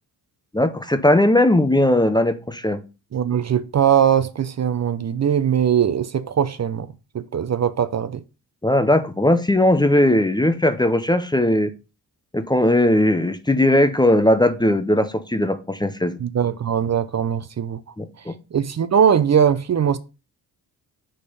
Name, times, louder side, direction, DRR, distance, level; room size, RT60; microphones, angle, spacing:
voice 1, 0.5-2.8 8.6-11.7 12.3-16.2 18.0-18.3, left 1 dB, 10° left, 0.6 m, -18 dB
voice 2, 3.1-8.2 16.2-17.8 18.5-20.0, right 8 dB, 45° right, 0.6 m, -20 dB
5.1 x 4.3 x 5.4 m
cardioid pair, 90°, 38 cm